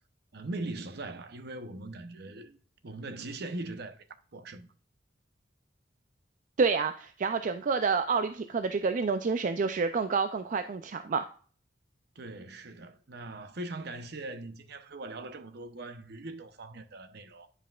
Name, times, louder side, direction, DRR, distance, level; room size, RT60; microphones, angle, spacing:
voice 1, 0.3-2.6 2.8-4.1 4.3-4.7 12.1-17.5, right 2 dB, 65° right, 0.8 m, -40 dB
voice 2, 6.6-11.3, right 5 dB, 45° right, 0.4 m, -28 dB
9.9 x 5.5 x 2.4 m
head